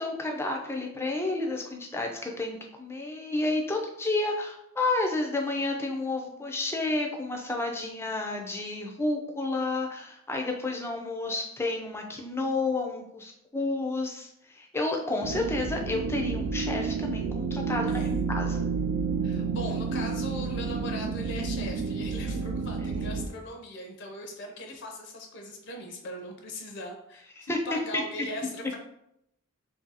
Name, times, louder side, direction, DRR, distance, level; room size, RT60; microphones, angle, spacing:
voice 1, 0.0-18.7 27.5-27.6 27.9-28.0, left 2 dB, 10° left, 1 dB, 0.4 m, -31 dB
sound 1, 15.2-23.3, right 5 dB, 55° right, 0.3 m, -30 dB
voice 2, 17.9-18.2 19.2-28.8, left 1 dB, 55° left, 3 dB, 0.6 m, -39 dB
2.8 x 2.6 x 3.9 m, 0.78 s
head